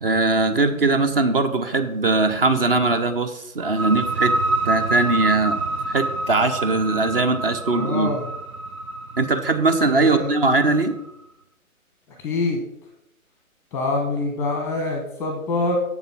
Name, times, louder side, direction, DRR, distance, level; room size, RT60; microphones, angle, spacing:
voice 1, 0.0-4.4 4.6-5.6 5.9-8.1 9.2-11.0, right 3 dB, 40° right, 9 dB, 0.8 m, -20 dB
sound 1, 3.6-11.1, right 2 dB, 75° right, 1.0 m, -27 dB
voice 2, 7.7-8.3 9.8-10.3 12.2-12.6 13.7-15.8, left 2 dB, 5° left, 2 dB, 0.7 m, -25 dB
7.1 x 6.9 x 5.5 m, 0.82 s
figure-of-eight pair, 135°, 43 cm